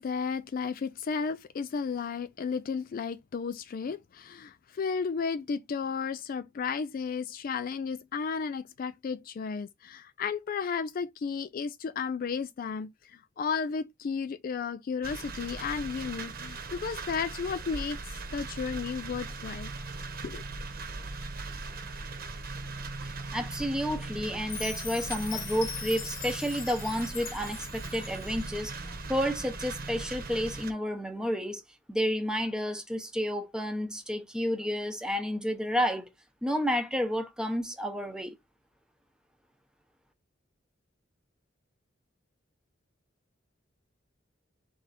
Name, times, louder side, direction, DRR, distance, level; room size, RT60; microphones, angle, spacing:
voice 1, 0.0-19.7 20.2-20.4, left 5 dB, 45° left, 0.3 m, -33 dB
sound 1, 15.0-30.7, right 3 dB, 50° right, 1.0 m, -39 dB
voice 2, 23.3-31.6 31.9-36.1 36.4-38.4, equal, 5° right, 0.8 m, -31 dB
Chime, 24.5-28.6, left 8 dB, 85° left, 1.0 m, -41 dB
3.6 x 3.4 x 4.1 m
head